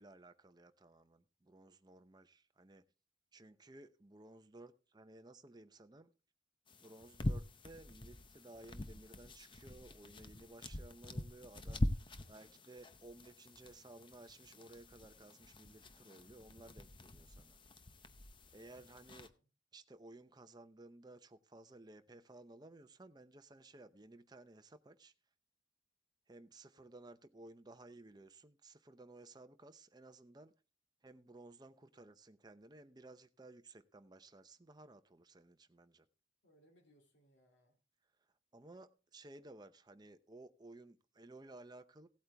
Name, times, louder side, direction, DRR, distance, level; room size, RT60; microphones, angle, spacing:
voice 1, 0.0-2.8 3.3-6.1 6.8-11.9 12.3-17.6 18.5-19.3 19.7-25.1 26.3-30.5 31.0-36.1 38.5-42.1, right 2 dB, 20° right, 0.7 m, -57 dB
sound 1, 6.7-19.3, left 1 dB, 25° left, 0.7 m, -44 dB
voice 2, 12.2-12.6 18.7-19.4 36.4-37.8, equal, 65° left, 2.7 m, -71 dB
16.5 x 8.6 x 3.4 m
head